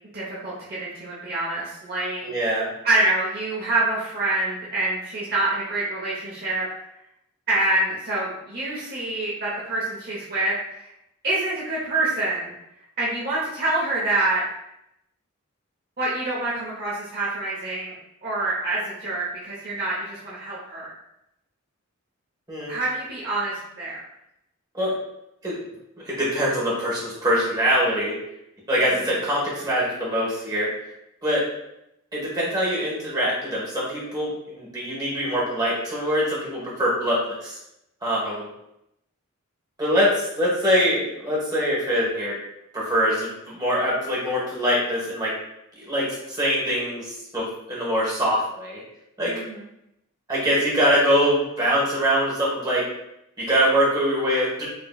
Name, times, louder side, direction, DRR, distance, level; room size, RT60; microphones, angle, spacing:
voice 1, 0.1-2.3 2.8-6.6 7.5-10.9 11.2-12.5 13.0-14.4 16.0-18.0 18.2-20.9 22.7-24.0 28.8-28.9 49.2-49.7, right 2 dB, 45° right, -7 dB, 0.9 m, -26 dB
voice 2, 2.2-2.7 22.5-22.7 24.7-24.9 25.4-25.6 26.0-28.2 28.7-30.7 31.2-31.5 32.1-37.6 38.0-38.5 39.8-42.4 42.7-45.4 45.8-48.8 49.2-49.4 50.3-52.9 53.4-54.6, equal, 20° right, -6 dB, 1.3 m, -23 dB
5.1 x 3.0 x 2.3 m, 0.82 s
head